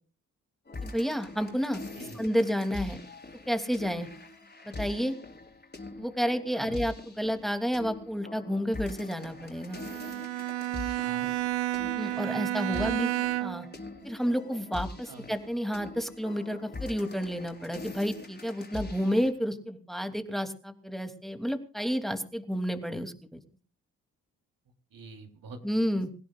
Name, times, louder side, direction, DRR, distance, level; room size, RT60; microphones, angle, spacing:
sound 1, 0.7-19.3, left 3 dB, 25° left, 5.0 m, -43 dB
voice 1, 0.8-1.8 2.1-3.0 3.5-4.1 4.8-5.1 6.0-9.8 12.0-13.1 13.4-13.7 14.0-23.4 25.6-26.1, equal, ahead, 7 dB, 2.9 m, -30 dB
Bowed string instrument, 9.7-13.8, right 16 dB, 85° right, 1.1 m, -31 dB
voice 2, 11.0-11.3 12.6-12.8 15.1-15.3 24.9-25.9, right 2 dB, 60° right, 5 dB, 3.7 m, -46 dB
28.0 x 16.0 x 2.5 m, 0.36 s
hypercardioid pair, 45°, 39 cm